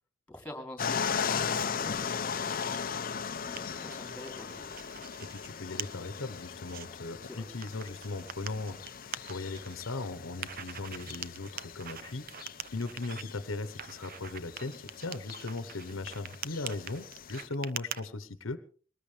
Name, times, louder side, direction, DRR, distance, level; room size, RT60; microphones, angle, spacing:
voice 1, 0.3-2.8 3.1-4.8 7.2-7.4, left 1 dB, 5° left, 6 dB, 3.3 m, -46 dB
sound 1, 0.8-17.5, left 6 dB, 45° left, 0.7 m, -38 dB
sound 2, 1.9-2.8 3.2-5.5 5.8-5.9 6.4-6.9 7.6-9.8 10.4-13.2 13.8-18.0, right 9 dB, 50° right, 0.7 m, -43 dB
voice 2, 5.2-18.6, left 3 dB, 80° left, 12 dB, 1.1 m, -38 dB
22.0 x 19.5 x 3.4 m, 0.41 s
head